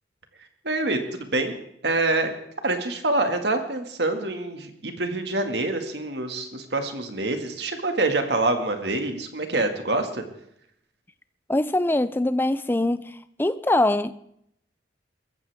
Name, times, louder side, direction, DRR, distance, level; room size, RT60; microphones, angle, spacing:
voice 1, 0.6-1.5 1.8-2.3 2.6-10.2, right 2 dB, 65° right, 2.0 m, -26 dB
voice 2, 11.5-14.2, left 1 dB, 10° left, 0.5 m, -23 dB
22.5 x 14.5 x 3.5 m
head